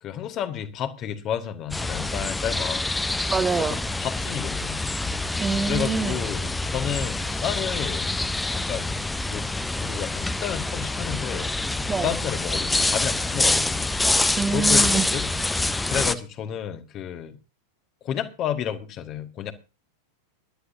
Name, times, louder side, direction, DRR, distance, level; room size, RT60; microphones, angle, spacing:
voice 1, 0.0-2.9 3.6-4.9 5.7-8.1 8.5-8.9 9.3-9.5 9.8-13.9 14.5-15.3 15.9-17.4 18.0-19.5, left 9 dB, 35° left, 1.6 m, -31 dB
sound 1, 1.7-16.1, left 2 dB, 10° left, 0.8 m, -26 dB
voice 2, 3.3-3.8 5.4-6.2 11.9-12.1 14.4-15.2, right 5 dB, 15° right, 1.1 m, -25 dB
20.5 x 11.5 x 2.7 m
figure-of-eight pair, 90°, 0 cm